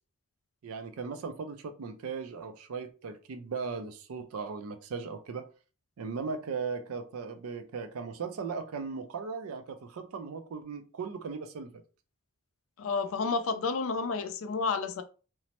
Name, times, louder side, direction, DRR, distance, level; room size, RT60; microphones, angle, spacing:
voice 1, 0.6-5.5 6.0-11.8, right 5 dB, 80° right, 0.4 m, -38 dB
voice 2, 12.8-15.0, left 4 dB, 70° left, 0.4 m, -30 dB
3.1 x 2.0 x 2.9 m
head